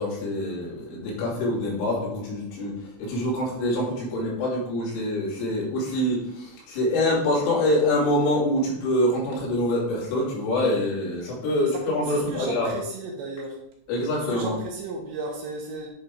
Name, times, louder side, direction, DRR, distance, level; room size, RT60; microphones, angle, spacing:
voice 1, 0.0-12.7 13.9-14.5, left 1 dB, 75° left, -5 dB, 5.4 m, -25 dB
voice 2, 11.7-13.6 14.2-15.9, right 3 dB, 75° right, 0 dB, 2.8 m, -34 dB
10.5 x 4.2 x 5.4 m, 0.84 s
omnidirectional pair, 5.9 m